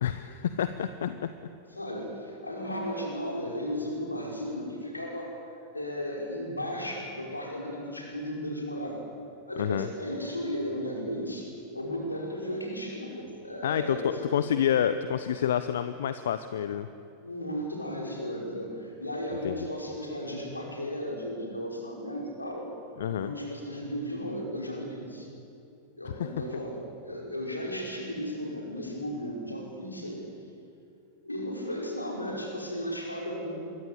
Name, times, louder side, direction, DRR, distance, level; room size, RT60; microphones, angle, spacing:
voice 1, 0.0-1.3 9.6-9.9 13.6-16.9 19.4-19.7 23.0-23.3 26.1-26.3, left 9 dB, 60° left, 12 dB, 0.9 m, -28 dB
voice 2, 1.7-5.4 5.7-9.0 9.5-14.5 17.2-22.7 23.2-25.3 26.0-30.3 31.2-33.6, equal, 85° left, 0 dB, 5.6 m, -35 dB
26.0 x 23.0 x 8.4 m, 2.7 s
figure-of-eight pair, 90°, 0 cm